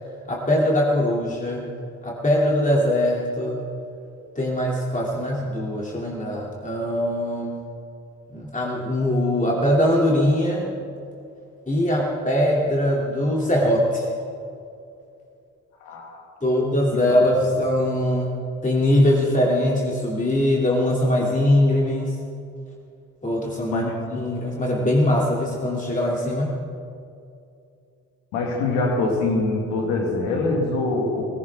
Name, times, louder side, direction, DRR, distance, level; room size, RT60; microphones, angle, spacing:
voice 1, 0.3-1.7 2.0-3.6 4.4-7.6 8.3-10.7 11.7-14.1 16.4-18.4 18.6-22.2 23.2-26.6, left 1 dB, 20° left, -3 dB, 2.9 m, -21 dB
voice 2, 15.8-16.2 16.5-16.6 16.9-17.2 23.7-24.0 28.3-31.2, left 2 dB, 90° left, 0 dB, 2.2 m, -24 dB
18.5 x 17.0 x 3.7 m, 2.5 s
hypercardioid pair, 40°, 37 cm